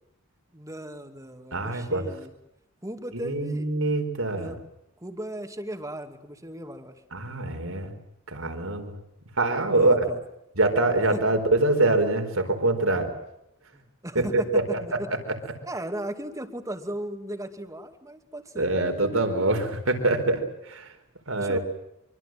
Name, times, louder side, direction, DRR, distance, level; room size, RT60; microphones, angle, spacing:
voice 1, 0.5-2.3 2.8-4.0 4.3-4.6 5.0-7.0 9.7-10.2 11.1-11.2 13.7-15.1 15.6-18.7 21.3-21.6, right 1 dB, 15° right, 6 dB, 2.5 m, -36 dB
voice 2, 1.5-2.0 3.1-4.5 7.1-7.9 8.3-8.9 9.4-10.0 10.6-13.1 14.1-14.8 15.3-15.4 18.6-20.9 21.3-21.6, right 2 dB, 75° right, 6 dB, 4.8 m, -24 dB
25.0 x 25.0 x 7.8 m, 0.83 s
head